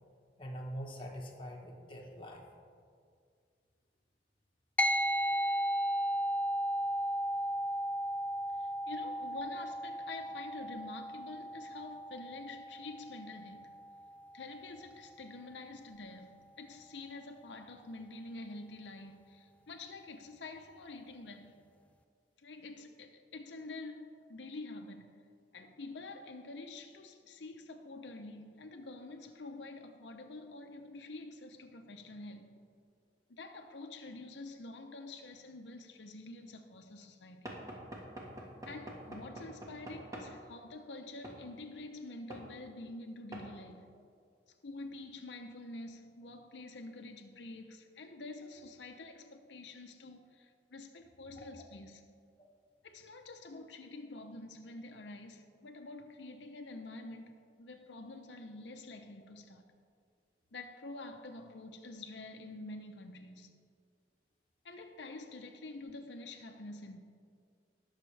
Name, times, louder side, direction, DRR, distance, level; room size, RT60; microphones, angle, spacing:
voice 1, 0.4-2.4 51.3-51.5 52.4-52.5, equal, 30° left, 1.2 m, -44 dB
sound 1, 4.8-14.5, equal, 10° left, 0.3 m, -35 dB
voice 2, 8.6-13.8 14.3-21.6 22.4-25.2 25.5-32.5 33.3-37.5 38.7-43.9 44.6-52.0 52.8-59.7 60.5-63.5 64.6-67.0, left 2 dB, 85° left, 0.7 m, -47 dB
Knock / Wood, 37.5-40.3 41.2-41.4 42.3-42.5 43.3-43.5, right 1 dB, 20° right, 1.5 m, -46 dB
19.5 x 6.6 x 3.3 m
head